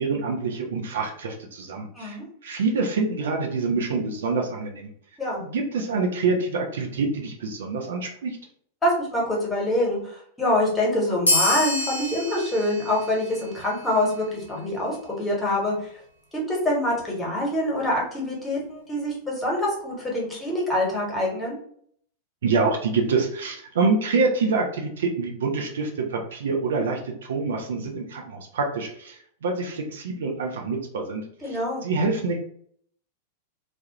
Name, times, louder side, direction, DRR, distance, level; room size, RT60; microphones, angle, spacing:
voice 1, 0.0-2.2 2.4-4.9 5.4-8.4 22.4-32.4, right 4 dB, 65° right, 2 dB, 0.4 m, -26 dB
voice 2, 8.8-15.7 16.5-21.5 31.4-31.8, left 1 dB, 10° left, -3 dB, 1.0 m, -25 dB
sound 1, 11.3-14.3, left 1 dB, 80° left, 0.5 m, -27 dB
2.2 x 2.0 x 2.8 m, 0.63 s
figure-of-eight pair, 90°, 0 cm